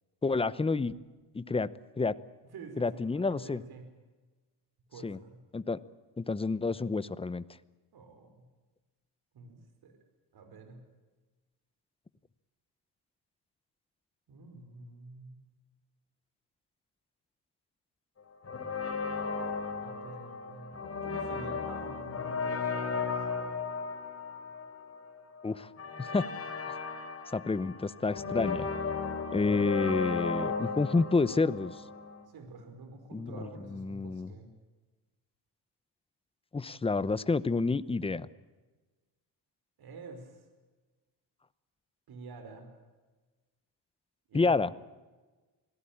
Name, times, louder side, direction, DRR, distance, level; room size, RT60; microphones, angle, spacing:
voice 1, 0.2-0.9 1.3-1.7 2.0-2.2 2.8-3.6 5.0-5.2 5.5-5.8 6.2-7.4 25.4-25.7 26.0-26.3 27.3-28.7 29.3-31.8 33.1-33.3 33.7-34.3 36.5-38.3 44.3-44.7, left 3 dB, 15° left, 16 dB, 0.8 m, -29 dB
voice 2, 2.5-3.8 4.9-5.4 7.9-8.4 9.3-10.0 10.3-10.8 14.3-15.4 19.8-23.3 32.3-34.5 39.8-40.5 42.1-42.7 44.3-44.8, right 3 dB, 60° right, 6 dB, 5.2 m, -48 dB
sound 1, 18.4-32.2, left 5 dB, 35° left, 3.6 m, -35 dB
25.5 x 17.5 x 8.7 m, 1.3 s
cardioid pair, 130°, 41 cm